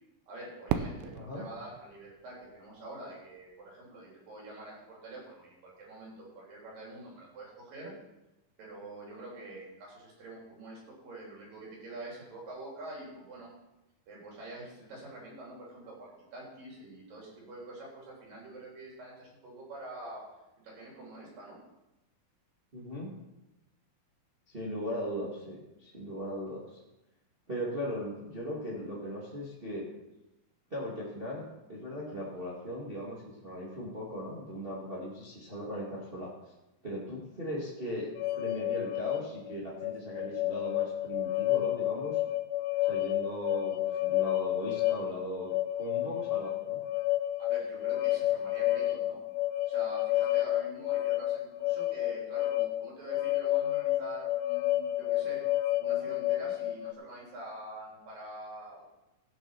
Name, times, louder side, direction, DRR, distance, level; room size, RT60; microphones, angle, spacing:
voice 1, 0.3-7.9 8.6-13.5 14.1-20.3 20.6-21.6 47.4-49.2 49.7-55.4 55.8-58.8, right 1 dB, 65° right, -3 dB, 5.6 m, -46 dB
Fireworks, 0.7-3.6, right 9 dB, 85° right, 2.6 m, -37 dB
voice 2, 1.1-1.5 22.7-23.1 24.5-26.7 27.5-29.9 30.7-36.3 36.8-42.2 42.9-46.8, equal, 20° right, -4 dB, 1.6 m, -38 dB
sound 1, 38.2-56.9, left 15 dB, 85° left, 2.6 m, -30 dB
16.5 x 6.3 x 6.0 m, 0.95 s
omnidirectional pair, 4.3 m